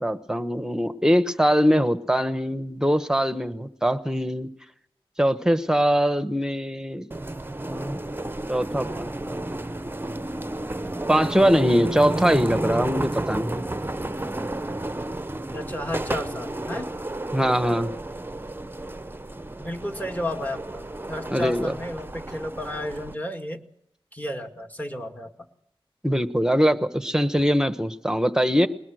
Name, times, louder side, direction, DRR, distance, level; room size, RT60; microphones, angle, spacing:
voice 1, 0.0-4.5 5.2-7.1 7.7-8.0 8.5-9.4 11.1-13.7 17.3-17.9 21.3-21.7 26.0-28.7, equal, 5° right, 11 dB, 1.1 m, -22 dB
sound 1, 7.1-23.1, right 1 dB, 20° right, 0.7 m, -32 dB
voice 2, 15.5-16.9 19.6-23.6 24.1-25.3, left 1 dB, 15° left, 5 dB, 2.1 m, -32 dB
21.5 x 20.0 x 6.3 m, 0.74 s
wide cardioid pair, 60°, 10 cm